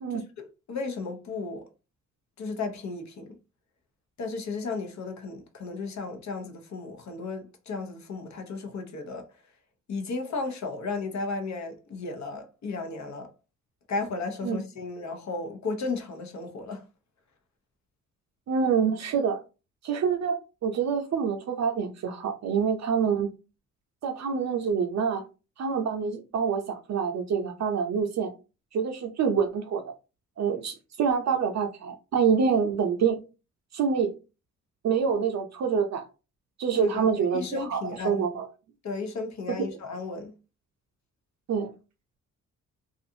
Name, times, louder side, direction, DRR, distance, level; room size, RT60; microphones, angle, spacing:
voice 1, 0.1-1.7 2.4-3.4 4.2-9.3 9.9-13.3 13.9-16.8 36.7-37.1 37.3-38.3 38.8-40.4, left 3 dB, 55° left, 0.8 m, -34 dB
voice 2, 18.5-19.4 19.8-23.3 24.0-25.2 25.6-28.3 28.7-29.8 30.4-33.2 33.7-34.1 34.8-36.0 36.6-38.5 39.6-39.7 41.5-41.7, right 6 dB, 55° right, 0.5 m, -26 dB
2.5 x 2.4 x 2.6 m
supercardioid pair, 60°, 33 cm